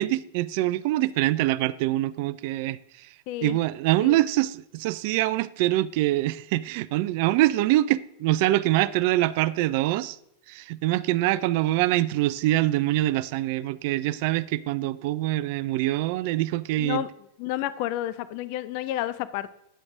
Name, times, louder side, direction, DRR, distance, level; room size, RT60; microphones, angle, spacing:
voice 1, 0.0-3.1 3.4-10.2 10.5-17.0, right 16 dB, 45° right, 0.4 m, -24 dB
voice 2, 3.3-3.6 4.0-4.2 16.8-17.1 17.4-19.5, left 13 dB, 45° left, 0.5 m, -30 dB
10.0 x 7.8 x 3.6 m
figure-of-eight pair, 90°, 0 cm